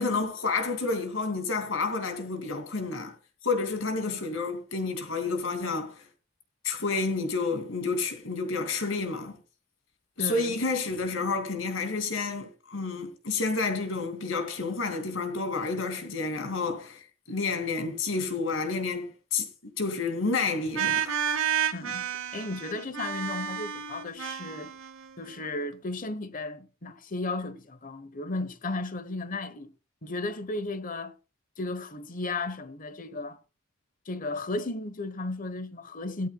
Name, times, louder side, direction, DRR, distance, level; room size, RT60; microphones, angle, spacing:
voice 1, 0.0-3.1 3.4-6.0 6.6-9.4 10.2-19.5 19.8-21.2, left 4 dB, 75° left, 2.7 m, -30 dB
voice 2, 10.2-10.6 21.7-22.0 22.3-24.7 25.2-29.7 30.0-31.1 31.6-33.4 34.1-36.3, left 2 dB, 45° left, 1.1 m, -34 dB
sound 1, 20.7-25.4, right 8 dB, 85° right, 1.0 m, -31 dB
16.5 x 13.0 x 2.3 m
head